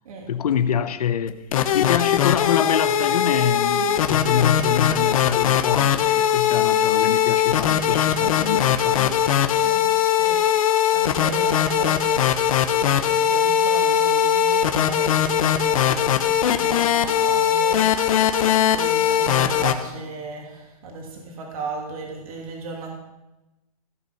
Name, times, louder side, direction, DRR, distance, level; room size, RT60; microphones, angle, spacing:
voice 1, 0.3-1.4 1.7-9.2, left 8 dB, 80° left, 12 dB, 0.9 m, -25 dB
sound 1, 1.3-19.7, left 9 dB, 65° left, 1.1 m, -20 dB
voice 2, 9.6-10.4 10.9-12.0 12.7-17.8 18.7-22.9, right 3 dB, 65° right, 0 dB, 2.9 m, -35 dB
16.5 x 6.2 x 5.9 m, 0.96 s
hypercardioid pair, 150°, 19 cm